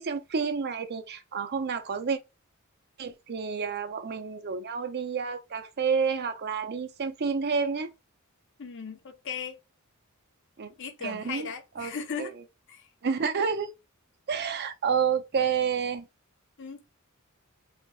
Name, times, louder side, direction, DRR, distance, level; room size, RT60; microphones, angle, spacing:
voice 1, 0.0-2.2 3.0-7.9 10.6-10.7 11.0-11.5 11.8-11.9 12.2-12.3 13.0-13.7 14.3-16.0, right 6 dB, 50° right, 0.6 m, -29 dB
voice 2, 8.6-9.6 10.8-12.4 12.7-12.9 16.6-16.8, left 6 dB, 60° left, 0.7 m, -37 dB
4.1 x 2.9 x 2.3 m
head